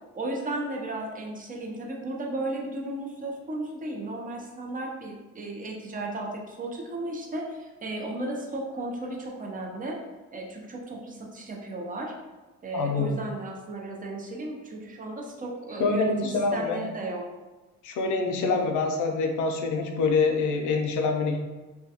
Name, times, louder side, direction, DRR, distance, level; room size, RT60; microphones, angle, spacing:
voice 1, 0.1-10.0 10.3-12.1 12.6-17.3, right 2 dB, 30° right, 0 dB, 0.5 m, -35 dB
voice 2, 12.7-13.2 15.8-16.8 17.8-21.4, left 4 dB, 80° left, 3 dB, 0.5 m, -25 dB
2.2 x 2.2 x 2.7 m, 1.2 s
cardioid pair, 90°, 30 cm